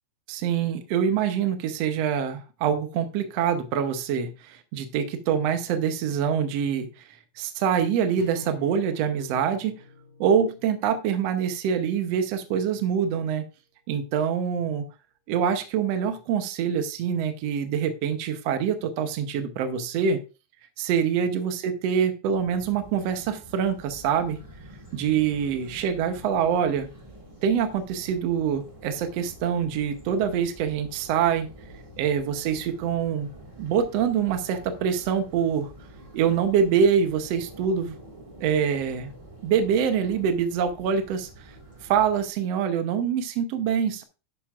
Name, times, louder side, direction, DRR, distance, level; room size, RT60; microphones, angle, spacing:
voice 1, 0.3-6.9 7.4-9.8 10.2-13.4 13.9-14.8 15.3-20.2 20.8-24.4 24.9-26.9 27.4-31.5 32.0-33.3 33.6-35.7 36.1-37.9 38.4-39.1 39.4-41.5 41.8-44.0, right 7 dB, 70° right, 7 dB, 1.8 m, -25 dB
sound 1, 8.2-12.5, left 2 dB, 25° left, 3.2 m, -47 dB
sound 2, 22.3-42.3, right 1 dB, 15° right, 1.4 m, -47 dB
12.0 x 8.9 x 2.4 m, 0.31 s
omnidirectional pair, 3.4 m